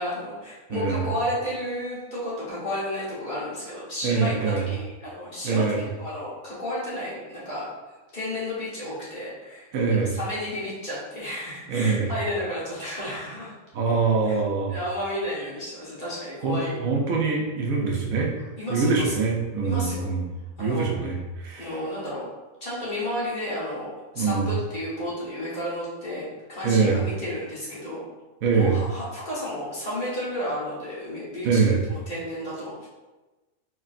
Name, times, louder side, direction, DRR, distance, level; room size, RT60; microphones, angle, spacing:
voice 1, 0.0-5.7 6.0-7.7 8.1-13.5 14.2-14.4 14.7-16.8 18.6-19.1 19.6-20.1 20.6-20.9 21.6-22.3 22.6-28.0 28.5-31.6 31.9-32.9, left 1 dB, 35° left, -9 dB, 1.3 m, -32 dB
voice 2, 0.7-1.0 4.0-4.6 5.4-5.8 9.7-10.1 11.7-12.1 13.7-14.7 16.4-18.3 18.7-20.2 20.6-21.2 21.4-21.7 24.2-24.5 26.6-27.0 28.4-28.7 31.4-31.8, right 4 dB, 80° right, -1 dB, 1.1 m, -23 dB
4.5 x 3.0 x 2.5 m, 1.2 s
omnidirectional pair, 1.5 m